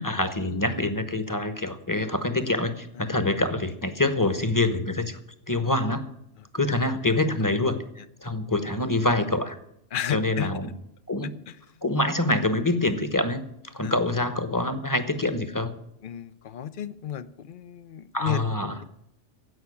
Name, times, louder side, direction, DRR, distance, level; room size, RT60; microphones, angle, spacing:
voice 1, 0.0-5.2 5.5-6.1 6.5-7.8 8.2-9.6 10.1-10.7 11.1-11.3 11.8-13.4 13.7-15.7 18.1-18.7, left 2 dB, 15° left, 11 dB, 1.0 m, -25 dB
voice 2, 9.9-10.5 11.5-11.6 13.8-14.0 16.0-18.8, left 9 dB, 50° left, 15 dB, 0.7 m, -33 dB
15.5 x 5.8 x 9.8 m, 0.75 s
omnidirectional pair, 1.3 m